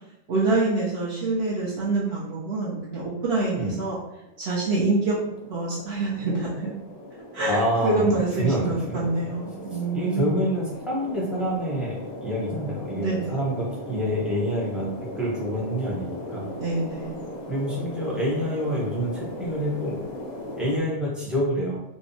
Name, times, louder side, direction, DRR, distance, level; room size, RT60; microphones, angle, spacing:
voice 1, 0.3-4.0 4.4-5.2 5.5-6.7 7.3-10.4 12.9-13.4 16.3-17.2, right 3 dB, 70° right, -6 dB, 0.8 m, -26 dB
sound 1, 4.1-20.8, left 1 dB, 55° left, 0.5 m, -38 dB
voice 2, 7.4-9.3 9.7-16.4 17.5-20.0 20.6-21.8, equal, ahead, -7 dB, 0.4 m, -27 dB
2.6 x 2.1 x 2.5 m, 0.87 s
omnidirectional pair, 1.2 m